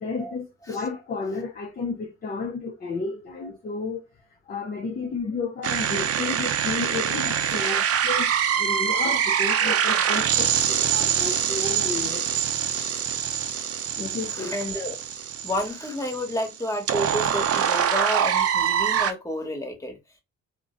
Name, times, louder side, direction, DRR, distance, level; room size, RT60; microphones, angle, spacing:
voice 1, 0.0-4.0 4.5-12.3 14.0-14.5, left 4 dB, 30° left, 0.5 m, -32 dB
sound 1, 5.6-19.1, right 8 dB, 50° right, 0.5 m, -24 dB
voice 2, 14.3-15.0 15.4-20.0, left 1 dB, 10° left, 1.2 m, -30 dB
2.4 x 2.1 x 3.7 m
cardioid pair, 90°, 30 cm